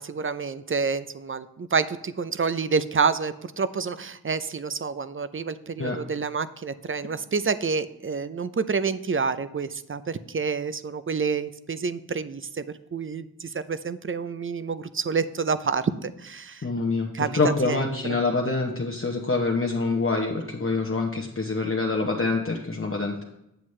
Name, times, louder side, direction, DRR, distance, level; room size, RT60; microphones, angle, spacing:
voice 1, 0.0-12.7 12.9-16.6 17.1-17.9, right 5 dB, 35° right, 14 dB, 0.4 m, -28 dB
voice 2, 16.6-23.2, left 3 dB, 35° left, 0 dB, 0.9 m, -26 dB
8.0 x 7.4 x 3.2 m, 0.85 s
wide cardioid pair, 55°, 36 cm